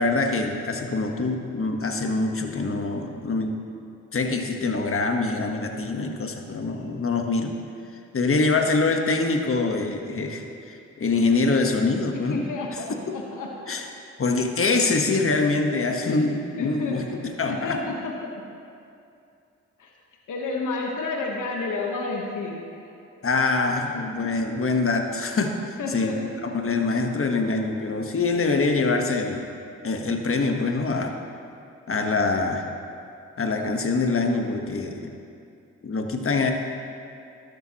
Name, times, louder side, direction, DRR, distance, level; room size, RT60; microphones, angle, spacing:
voice 1, 0.0-3.6 4.1-7.5 8.1-12.4 13.7-13.9 14.2-17.8 23.2-26.1 26.4-29.5 29.8-31.2 31.9-32.7 33.4-35.1 35.8-36.5, left 3 dB, 45° left, 4 dB, 1.3 m, -24 dB
voice 2, 12.3-13.7 16.1-16.2 16.6-17.1 17.5-18.3 19.8-19.9 20.3-22.6 23.9-24.1 25.8-26.2, left 3 dB, 75° left, 0 dB, 1.3 m, -30 dB
12.5 x 12.0 x 3.0 m, 2.5 s
supercardioid pair, 45°, 31 cm